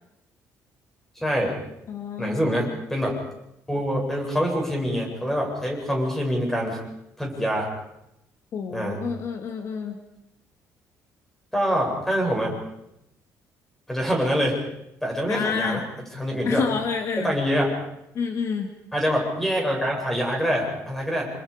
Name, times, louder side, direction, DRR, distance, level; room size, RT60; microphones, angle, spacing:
voice 1, 1.2-1.6 2.2-3.2 3.7-6.8 7.2-7.7 8.7-9.0 11.5-12.6 13.9-14.6 15.0-15.8 16.1-16.6 17.2-17.7 18.9-21.3, equal, 5° left, 0 dB, 7.8 m, -25 dB
voice 2, 1.9-2.5 8.5-10.0 15.3-15.9 16.4-17.3 18.1-18.7, left 5 dB, 50° left, 5 dB, 2.3 m, -28 dB
28.5 x 27.5 x 5.3 m, 0.83 s
cardioid pair, 150°, 6 cm